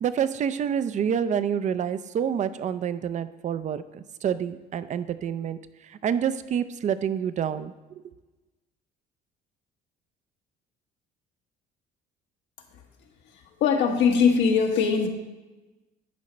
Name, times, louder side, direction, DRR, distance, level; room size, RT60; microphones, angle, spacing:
voice 1, 0.0-5.6 5.8-7.7, right 8 dB, 40° right, 14 dB, 0.5 m, -27 dB
voice 2, 13.6-15.1, left 6 dB, 75° left, 3 dB, 1.3 m, -21 dB
10.5 x 5.1 x 4.3 m, 1.1 s
cardioid pair, 115°, 19 cm